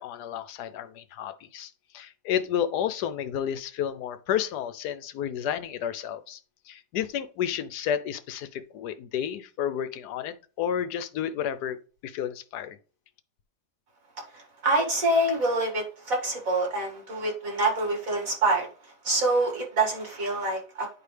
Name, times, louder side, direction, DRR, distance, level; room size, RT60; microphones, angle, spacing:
voice 1, 0.0-6.4 6.7-11.8 12.0-12.8, left 9 dB, 80° left, 1.2 m, -31 dB
voice 2, 14.3-18.7 19.0-20.9, right 2 dB, 55° right, 2.5 m, -26 dB
9.6 x 4.8 x 3.3 m
omnidirectional pair, 1.7 m